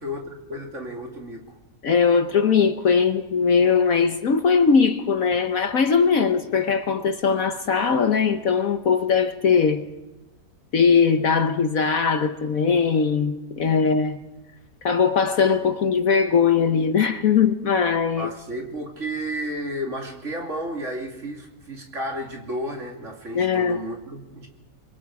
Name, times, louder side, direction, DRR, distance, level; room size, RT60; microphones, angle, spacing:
voice 1, 0.0-1.6 13.6-13.7 18.2-24.5, equal, 40° right, 2.9 m, -32 dB
voice 2, 1.8-9.8 10.7-14.2 14.8-18.3 23.3-23.8, left 6 dB, 55° left, 1.3 m, -20 dB
26.0 x 23.5 x 4.8 m
omnidirectional pair, 1.9 m